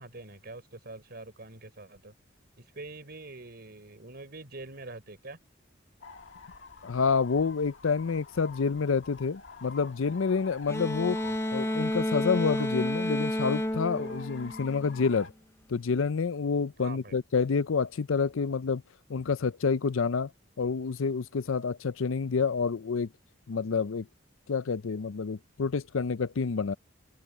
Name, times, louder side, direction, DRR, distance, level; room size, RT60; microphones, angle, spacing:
voice 1, 0.0-2.1 2.6-5.4 11.0-11.3 16.8-17.1, right 2 dB, 50° right, 3.9 m, -45 dB
sound 1, 6.0-15.3, left 4 dB, 65° left, 2.0 m, -48 dB
voice 2, 6.8-11.2 11.5-15.3 15.7-18.8 19.1-20.3 20.6-23.1 23.5-24.1 24.5-26.7, left 5 dB, 85° left, 0.6 m, -28 dB
sound 2, 10.7-15.1, left 1 dB, 15° left, 0.8 m, -31 dB
head